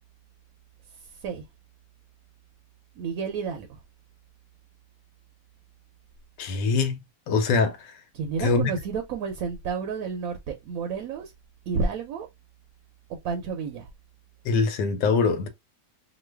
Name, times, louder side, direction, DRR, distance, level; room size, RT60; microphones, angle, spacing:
voice 1, 3.0-3.8 8.1-11.3 11.7-12.3 13.2-13.9, right 5 dB, 70° right, 0.9 m, -30 dB
voice 2, 6.4-7.9 8.4-8.7 14.4-15.5, left 4 dB, 85° left, 1.3 m, -24 dB
3.1 x 2.2 x 3.2 m
omnidirectional pair, 1.8 m